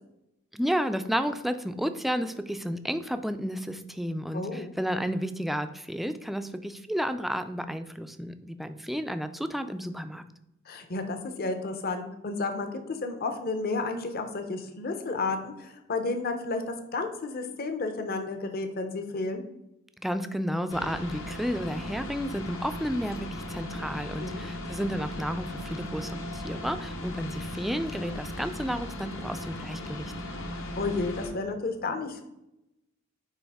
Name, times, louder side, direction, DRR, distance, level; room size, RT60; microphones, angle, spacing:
voice 1, 0.5-10.2 20.0-30.1, equal, ahead, 9 dB, 0.3 m, -32 dB
voice 2, 4.3-4.7 10.7-19.4 24.2-24.5 30.5-32.2, left 3 dB, 50° left, 6 dB, 0.7 m, -32 dB
sound 1, 20.7-31.3, left 1 dB, 70° left, 1.0 m, -37 dB
9.2 x 3.3 x 3.5 m, 0.88 s
head